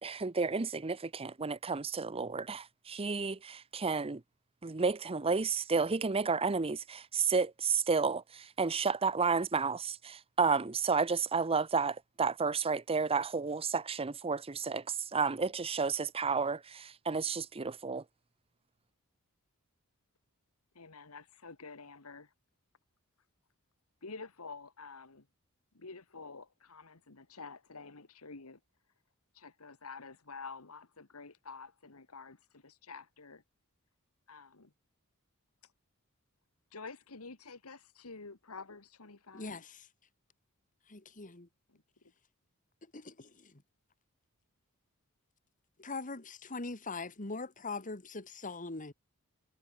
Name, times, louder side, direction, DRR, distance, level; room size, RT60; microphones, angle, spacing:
voice 1, 0.0-4.2 4.6-18.0, right 5 dB, 25° right, 0.7 m, -31 dB
voice 2, 20.8-22.3 24.0-25.3 25.7-28.6 29.3-33.4 34.3-34.7 36.7-39.6 41.7-42.1, left 4 dB, 80° left, 1.8 m, -49 dB
voice 3, 39.3-39.9 40.9-41.5 42.9-43.6 45.8-48.9, left 3 dB, 35° left, 2.1 m, -42 dB
head